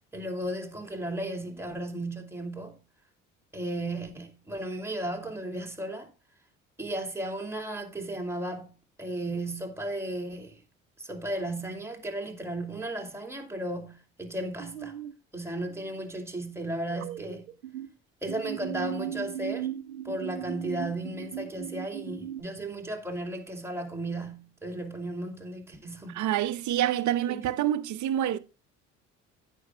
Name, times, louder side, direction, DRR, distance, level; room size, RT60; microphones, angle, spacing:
voice 1, 0.1-2.8 3.5-6.1 6.8-10.6 11.0-15.0 15.3-17.5 18.2-19.7 20.0-26.3 27.3-27.4, right 1 dB, 5° right, 2.6 m, -35 dB
sound 1, 14.6-15.1 16.9-17.9 18.3-22.4, right 11 dB, 85° right, 0.7 m, -37 dB
voice 2, 26.1-28.4, right 11 dB, 50° right, 0.9 m, -27 dB
16.0 x 6.0 x 2.2 m
figure-of-eight pair, 55°, 39 cm